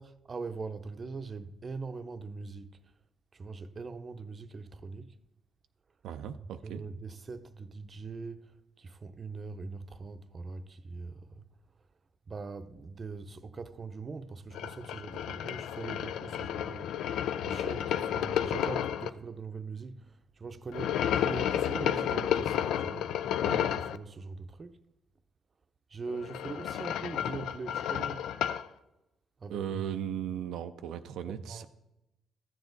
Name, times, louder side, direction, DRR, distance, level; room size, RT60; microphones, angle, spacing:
voice 1, 0.0-2.9 3.3-5.2 6.4-11.5 12.3-23.2 23.4-24.8 25.9-28.3 29.4-30.0 31.3-31.7, right 4 dB, 35° right, 0.6 m, -42 dB
voice 2, 6.0-6.8 29.5-31.6, right 9 dB, 85° right, 0.4 m, -37 dB
sound 1, 14.5-19.1 20.7-24.0 26.1-28.7, left 10 dB, 85° left, 0.4 m, -31 dB
14.0 x 7.1 x 4.0 m
cardioid pair, 90°, 0 cm